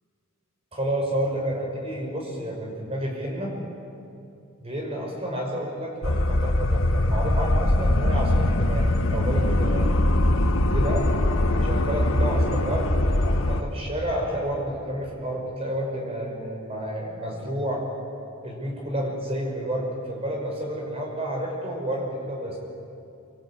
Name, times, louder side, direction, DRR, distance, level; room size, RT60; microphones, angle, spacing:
voice 1, 0.7-3.5 4.6-9.9 10.7-11.1 11.6-13.0 13.2-17.8 18.4-22.6, right 1 dB, 30° right, 0 dB, 5.9 m, -30 dB
sound 1, 6.0-13.6, left 1 dB, 70° left, 1.5 m, -22 dB
25.0 x 25.0 x 8.7 m, 2.7 s
head